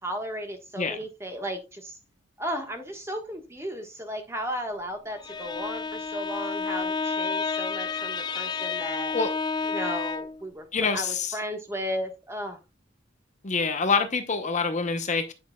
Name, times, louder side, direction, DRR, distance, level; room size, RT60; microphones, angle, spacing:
voice 1, 0.0-2.0 2.4-9.2 9.6-12.6, equal, 15° right, 1.3 m, -35 dB
Bowed string instrument, 5.1-10.4, left 5 dB, 20° left, 0.3 m, -30 dB
voice 2, 10.7-11.3 13.4-15.3, left 4 dB, 40° left, 0.7 m, -26 dB
9.3 x 6.3 x 2.3 m
head